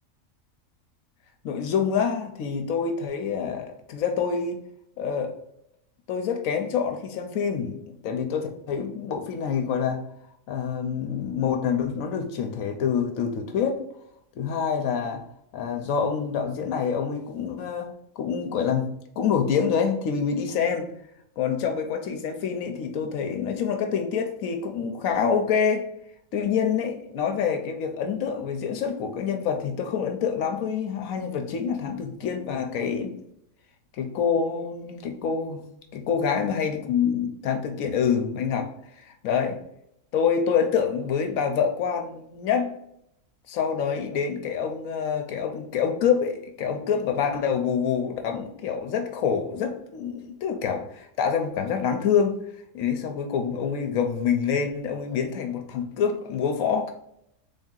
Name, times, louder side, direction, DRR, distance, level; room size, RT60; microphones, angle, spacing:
voice 1, 1.4-4.6 5.0-5.3 6.1-10.0 10.5-13.9 14.4-15.2 15.5-17.9 18.2-18.9 19.2-20.9 21.4-25.8 26.3-33.1 34.0-35.6 36.1-38.7 39.0-39.6 40.1-42.7 43.5-52.4 52.7-56.9, left 7 dB, 80° left, 4 dB, 1.0 m, -26 dB
3.6 x 2.7 x 3.7 m, 0.75 s
omnidirectional pair, 1.4 m